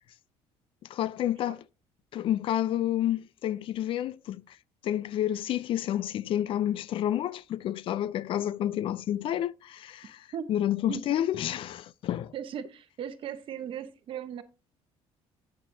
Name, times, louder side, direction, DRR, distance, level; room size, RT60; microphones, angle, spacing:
voice 1, 0.9-1.6 2.1-4.6 4.8-12.3, left 11 dB, 55° left, 0.4 m, -30 dB
voice 2, 12.3-14.4, right 8 dB, 50° right, 0.9 m, -37 dB
8.6 x 7.2 x 2.7 m
cardioid pair, 135°, 11 cm